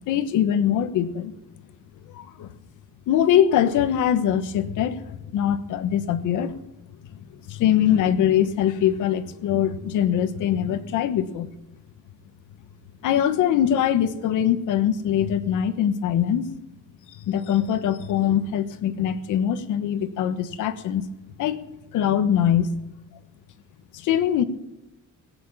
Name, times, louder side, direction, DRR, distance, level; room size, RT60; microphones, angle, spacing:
voice 1, 0.1-1.3 2.1-2.5 3.1-5.0 5.3-6.6 7.5-11.5 13.0-16.5 17.2-21.0 21.4-21.6 21.9-22.7 23.9-24.4, left 10 dB, 70° left, 12 dB, 1.3 m, -22 dB
18.0 x 9.2 x 7.3 m, 0.93 s
cardioid pair, 180°, 32 cm